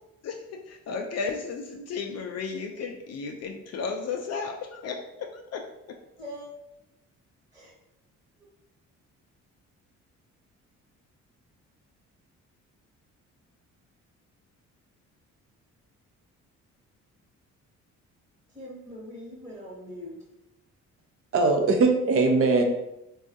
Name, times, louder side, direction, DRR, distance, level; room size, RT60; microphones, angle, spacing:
voice 1, 0.2-6.0, left 5 dB, 55° left, 3 dB, 0.4 m, -34 dB
voice 2, 6.2-6.5 7.5-7.7 8.4-8.5 18.5-20.2, equal, 10° right, -8 dB, 1.0 m, -42 dB
voice 3, 21.3-22.6, right 3 dB, 50° right, 4 dB, 0.6 m, -21 dB
3.5 x 2.3 x 2.6 m, 0.88 s
cardioid pair, 90°, 30 cm